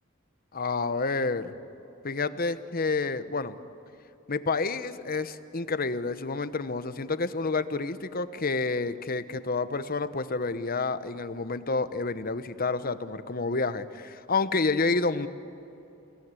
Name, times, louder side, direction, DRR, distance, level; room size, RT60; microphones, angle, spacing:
voice 1, 0.5-1.5 2.0-3.6 4.3-15.3, left 3 dB, 50° left, 12 dB, 1.1 m, -29 dB
29.5 x 18.5 x 9.9 m, 3.0 s
head